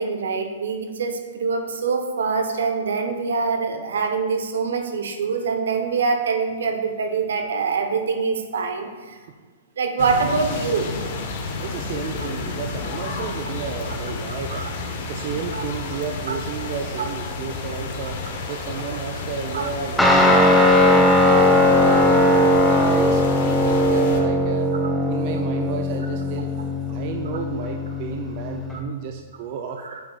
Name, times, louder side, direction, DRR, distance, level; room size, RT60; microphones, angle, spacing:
voice 1, 0.0-9.2 9.8-10.9 14.5-14.7 15.5-15.6 16.3-16.4 17.0-17.1 19.5-19.7 29.8-30.0, right 5 dB, 75° right, 5 dB, 0.9 m, -24 dB
sound 1, 10.0-24.2, left 3 dB, 55° left, 1.1 m, -31 dB
voice 2, 11.6-18.2 18.5-22.5 22.9-24.7 25.1-26.5 26.9-29.8, right 7 dB, 50° right, 4 dB, 0.5 m, -32 dB
Guitar, 20.0-28.8, left 1 dB, 5° left, 1.0 m, -18 dB
8.4 x 8.0 x 2.4 m, 1.5 s
hypercardioid pair, 115°, 0 cm